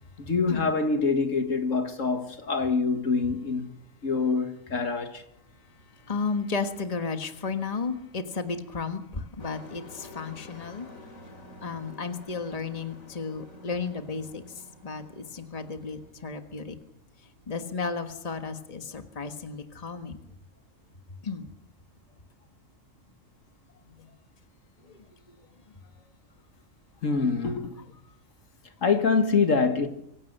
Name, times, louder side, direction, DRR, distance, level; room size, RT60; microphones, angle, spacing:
voice 1, 0.2-3.7 4.0-5.2 27.0-27.8 28.8-29.9, left 4 dB, 70° left, 2.0 m, -25 dB
voice 2, 6.1-10.9 11.6-14.4 14.8-16.8 17.5-20.2 21.2-21.5 23.9-24.1 24.9-25.0, left 4 dB, 30° left, 1.6 m, -33 dB
Truck, 9.4-16.1, left 2 dB, 85° left, 3.5 m, -49 dB
25.0 x 16.5 x 6.7 m
omnidirectional pair, 1.4 m